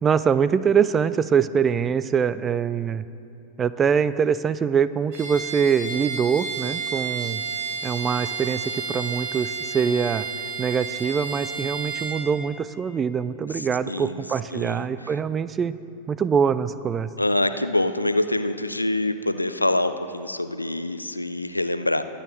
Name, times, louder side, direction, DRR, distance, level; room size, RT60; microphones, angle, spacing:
voice 1, 0.0-3.0 3.6-7.4 7.8-10.2 10.6-15.8 16.1-17.1, right 7 dB, 20° right, 15 dB, 0.3 m, -23 dB
Bowed string instrument, 5.1-12.3, right 5 dB, 45° right, 2.3 m, -31 dB
voice 2, 13.5-14.2 14.5-14.9 17.2-22.0, left 1 dB, 85° left, 12 dB, 0.4 m, -25 dB
22.5 x 8.7 x 3.2 m, 2.5 s
figure-of-eight pair, 90°, 0 cm